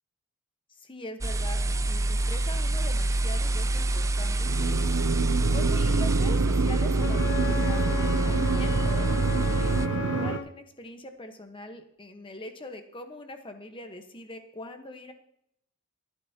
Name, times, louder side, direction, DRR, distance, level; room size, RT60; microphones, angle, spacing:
voice 1, 0.7-4.9 5.1-7.8 8.2-15.1, left 1 dB, 25° left, 6 dB, 1.1 m, -42 dB
sound 1, 1.2-9.9, right 2 dB, 15° right, 0.4 m, -26 dB
sound 2, 4.5-10.4, right 5 dB, 75° right, 0.6 m, -28 dB
Wind instrument woodwind instrument, 7.0-10.5, left 6 dB, 55° left, 0.9 m, -35 dB
26.5 x 9.3 x 2.8 m, 0.75 s
head